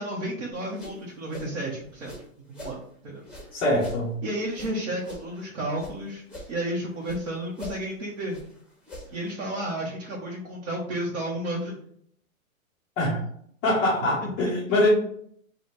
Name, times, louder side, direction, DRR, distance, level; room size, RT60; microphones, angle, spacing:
voice 1, 0.0-2.1 2.6-2.8 3.0-3.2 4.2-6.2 6.5-8.4 9.1-11.8 14.2-14.5, right 1 dB, 60° right, -4 dB, 1.2 m, -32 dB
sound 1, 0.5-2.8 3.2-6.0 6.2-7.2 7.5-9.3, left 1 dB, ahead, 0.8 m, -43 dB
voice 2, 3.5-4.1 13.0-13.2 13.6-14.9, left 1 dB, 15° left, -6 dB, 0.4 m, -23 dB
4.0 x 2.4 x 3.3 m, 0.65 s
hypercardioid pair, 135°, 41 cm